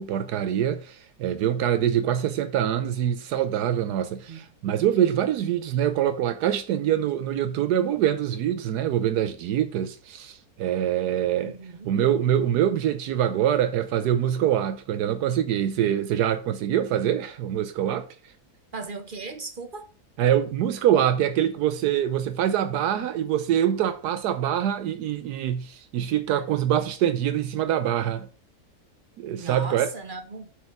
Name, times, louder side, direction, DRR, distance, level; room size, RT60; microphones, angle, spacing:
voice 1, 0.0-11.6 11.8-18.1 20.2-28.3 29.2-29.9, right 10 dB, 80° right, 1.2 m, -24 dB
voice 2, 11.4-11.9 18.7-19.8 29.3-30.5, right 4 dB, 40° right, 0.8 m, -37 dB
6.9 x 4.8 x 5.9 m
omnidirectional pair, 1.7 m